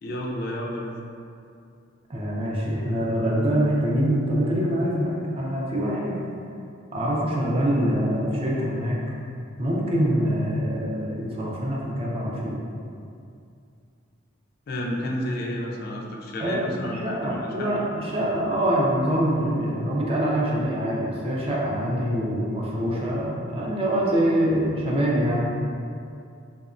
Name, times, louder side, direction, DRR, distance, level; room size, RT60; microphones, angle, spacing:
voice 1, 0.0-1.0 14.7-17.9, equal, 50° left, -2 dB, 0.3 m, -31 dB
voice 2, 2.1-6.2 6.9-9.0 9.6-12.6 16.4-25.4, equal, 30° right, -4 dB, 0.4 m, -24 dB
2.7 x 2.0 x 2.5 m, 2.5 s
head